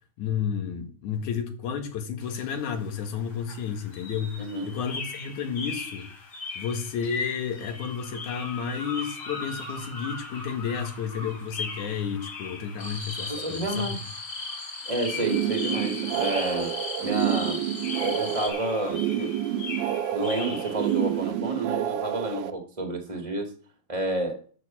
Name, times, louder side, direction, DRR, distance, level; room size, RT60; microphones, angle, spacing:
voice 1, 0.2-6.1 6.6-14.0, left 7 dB, 80° left, 3.1 m, -31 dB
sound 1, 2.2-21.4, left 3 dB, 55° left, 4.0 m, -40 dB
voice 2, 4.4-4.7 13.3-14.0 14.9-16.7 17.0-17.6 18.0-19.3 20.1-23.5 23.9-24.4, right 1 dB, 15° right, 1.3 m, -30 dB
sound 2, 12.8-18.5, left 3 dB, 30° left, 2.6 m, -37 dB
sound 3, 15.1-22.5, right 12 dB, 85° right, 2.4 m, -28 dB
13.0 x 5.1 x 7.4 m
omnidirectional pair, 3.4 m